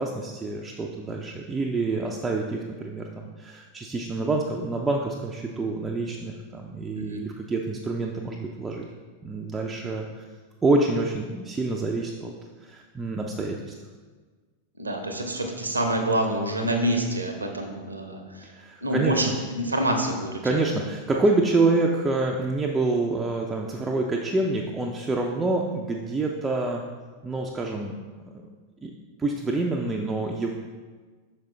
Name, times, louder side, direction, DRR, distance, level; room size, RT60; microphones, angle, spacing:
voice 1, 0.0-8.8 9.2-10.2 10.6-12.3 12.6-13.7 18.4-19.3 20.4-26.8 27.2-28.0 28.8-28.9 29.2-30.5, right 3 dB, 15° right, 0 dB, 0.4 m, -27 dB
voice 2, 14.8-18.5 18.8-20.7, right 1 dB, 80° right, 3 dB, 0.8 m, -27 dB
6.0 x 5.0 x 3.2 m, 1.4 s
figure-of-eight pair, 90°, 0 cm